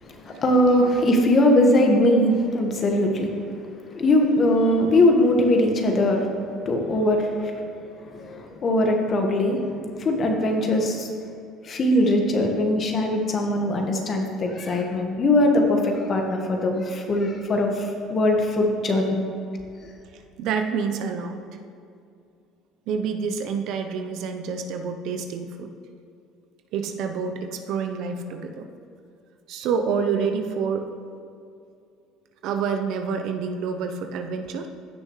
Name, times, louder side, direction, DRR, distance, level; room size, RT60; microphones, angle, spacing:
voice 1, 0.0-3.3 3.9-6.3 6.6-7.5 8.1-9.6 10.0-11.1 11.6-19.2, left 1 dB, 45° left, 2 dB, 1.6 m, -21 dB
voice 2, 20.4-21.4 22.9-25.7 26.7-28.7 29.5-30.9 32.4-34.7, right 6 dB, 65° right, 6 dB, 0.7 m, -28 dB
15.5 x 6.4 x 3.2 m, 2.4 s
hypercardioid pair, 70°, 0 cm